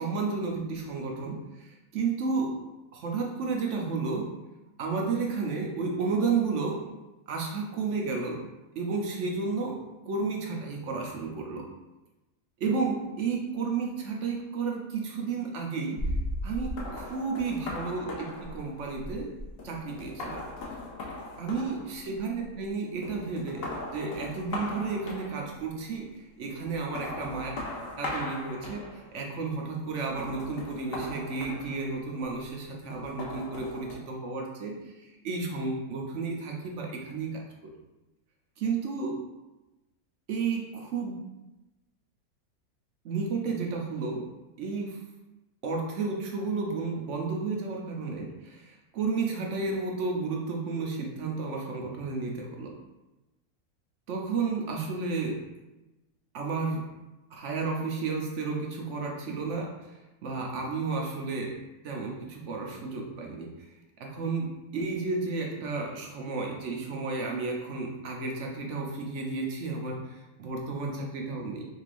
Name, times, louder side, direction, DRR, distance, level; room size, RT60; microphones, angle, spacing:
voice 1, 0.0-2.6 2.9-4.3 4.8-6.8 7.3-8.4 8.8-9.8 10.1-11.7 12.6-16.0 16.4-19.3 19.6-20.4 21.4-27.5 28.0-34.8 35.2-37.7 38.6-39.1 40.3-41.3 43.0-44.2 44.6-45.0 45.6-52.7 54.1-55.4 56.3-56.9 57.3-59.7 60.2-61.6 61.8-63.5 64.0-71.7, right 4 dB, 60° right, 0 dB, 0.9 m, -32 dB
sound 1, 16.0-22.7 23.0-25.7 26.6-29.2 30.0-32.2 32.9-34.0, left 1 dB, 55° left, 0.7 m, -38 dB
4.3 x 3.3 x 2.5 m, 1.0 s
omnidirectional pair, 1.6 m